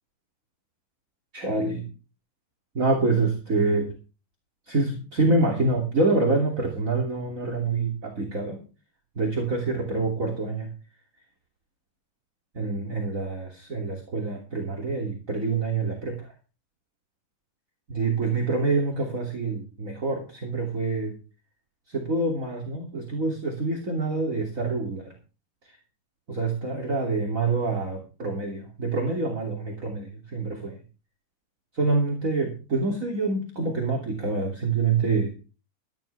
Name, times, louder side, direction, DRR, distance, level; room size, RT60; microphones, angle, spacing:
voice 1, 1.3-1.8 2.7-3.9 4.7-8.6 9.2-10.7 12.5-16.3 17.9-21.1 21.9-25.1 26.3-30.8 31.7-35.3, right 3 dB, 20° right, 1 dB, 2.5 m, -26 dB
15.5 x 13.5 x 3.5 m, 0.33 s
omnidirectional pair, 5.1 m